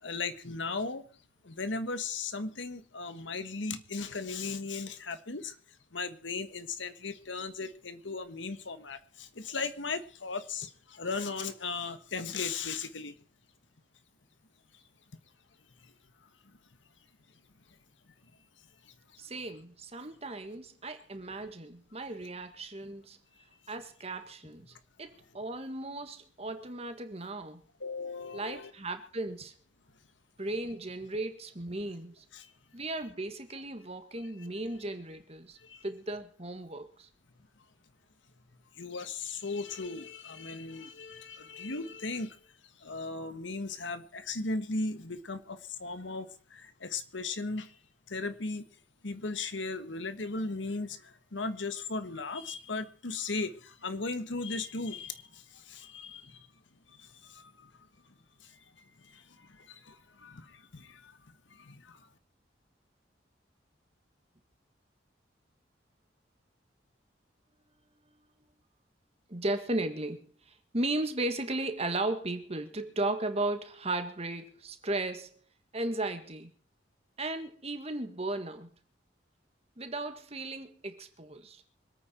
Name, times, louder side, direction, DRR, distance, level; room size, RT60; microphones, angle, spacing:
voice 1, 0.0-1.1 1.4-5.5 5.9-13.1 18.8-18.9 27.8-28.7 32.3-32.5 34.4-34.5 35.6-35.8 38.8-42.4 42.8-47.8 48.1-48.7 49.0-56.5 56.9-57.7 58.4-58.6 59.0-61.1 61.5-62.1, left 3 dB, 80° left, 1.4 m, -37 dB
voice 2, 19.2-23.2 23.7-24.7 25.0-27.6 28.3-29.5 30.4-32.3 32.7-35.6 35.8-37.1 69.3-75.4 75.7-76.5 77.2-78.7 79.8-81.6, right 2 dB, 35° right, 1.7 m, -36 dB
25.5 x 9.2 x 4.4 m
head